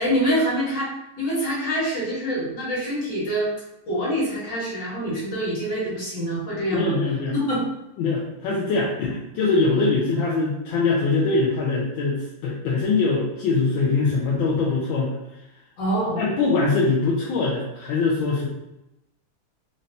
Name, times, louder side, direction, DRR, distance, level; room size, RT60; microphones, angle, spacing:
voice 1, 0.0-3.5 3.9-6.9 7.3-7.6 15.8-16.2, equal, 55° left, -6 dB, 2.0 m, -25 dB
voice 2, 6.7-7.3 8.0-15.1 16.2-18.5, left 3 dB, 75° left, -5 dB, 1.3 m, -22 dB
4.0 x 3.2 x 2.7 m, 0.92 s
omnidirectional pair, 2.4 m